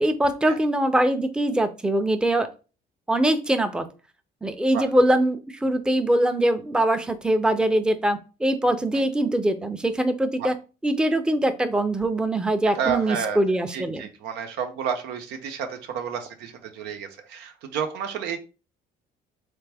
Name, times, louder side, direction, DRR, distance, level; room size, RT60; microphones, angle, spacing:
voice 1, 0.0-2.5 3.1-3.9 4.4-10.5 10.8-14.0, right 1 dB, 5° right, 8 dB, 0.5 m, -22 dB
voice 2, 12.7-13.4 13.7-18.4, right 7 dB, 90° right, 6 dB, 0.8 m, -30 dB
3.4 x 3.4 x 3.4 m, 0.32 s
cardioid pair, 110°, 17 cm